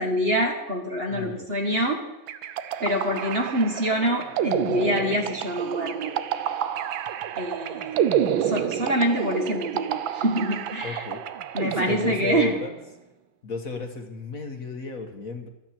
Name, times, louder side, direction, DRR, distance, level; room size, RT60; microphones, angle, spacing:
voice 1, 0.0-2.0 2.8-6.1 7.4-8.1 8.4-11.0 11.5-12.5, equal, 35° right, 2 dB, 1.6 m, -26 dB
voice 2, 1.1-1.5 10.8-11.2 11.6-12.8 13.4-15.5, left 4 dB, 50° left, 4 dB, 1.7 m, -33 dB
sound 1, 2.3-12.7, right 10 dB, 85° right, 1.6 m, -29 dB
24.0 x 8.9 x 4.5 m, 0.97 s
omnidirectional pair, 2.1 m